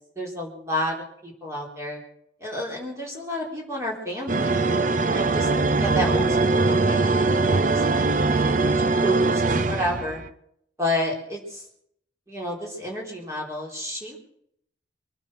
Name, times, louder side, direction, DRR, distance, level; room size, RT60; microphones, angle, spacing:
voice 1, 0.2-2.0 2.4-4.6 5.1-5.5 5.7-10.2 10.8-11.6 12.3-14.2, left 1 dB, 15° right, -2 dB, 3.9 m, -31 dB
sound 1, 4.3-10.3, right 3 dB, 40° right, 0.6 m, -22 dB
23.5 x 9.8 x 6.3 m, 0.71 s
head